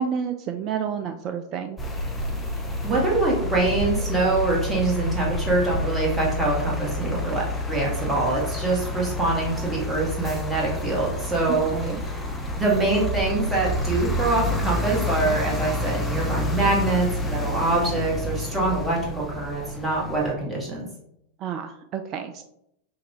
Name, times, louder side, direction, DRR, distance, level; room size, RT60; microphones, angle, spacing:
voice 1, 0.0-1.8 11.5-12.0 21.4-22.4, right 7 dB, 35° right, 7 dB, 0.3 m, -30 dB
sound 1, 1.8-20.3, left 1 dB, 10° left, 0.7 m, -29 dB
voice 2, 2.8-11.7 12.0-12.2 12.6-20.9, right 2 dB, 15° right, -3 dB, 1.7 m, -24 dB
5.7 x 2.6 x 3.1 m, 0.78 s
figure-of-eight pair, 90°, 0 cm